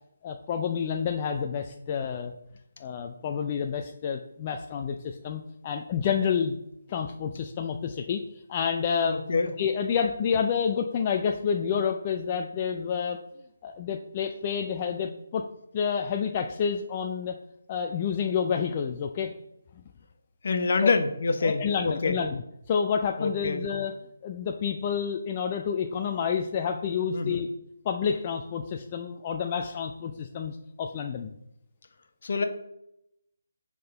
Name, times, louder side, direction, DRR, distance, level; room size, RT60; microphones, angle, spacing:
voice 1, 0.2-2.3 2.8-6.6 6.9-8.2 8.5-9.2 9.6-13.2 13.6-15.5 15.7-17.4 17.7-19.3 20.8-21.0 21.4-22.4 22.7-23.9 24.2-27.5 27.8-31.3, left 7 dB, 25° left, 4 dB, 0.3 m, -29 dB
voice 2, 9.1-9.5 20.4-22.2 23.2-23.6 27.1-27.4 32.2-32.4, left 4 dB, 55° left, 7 dB, 0.8 m, -26 dB
7.7 x 3.7 x 3.9 m, 0.80 s
figure-of-eight pair, 165°, 0 cm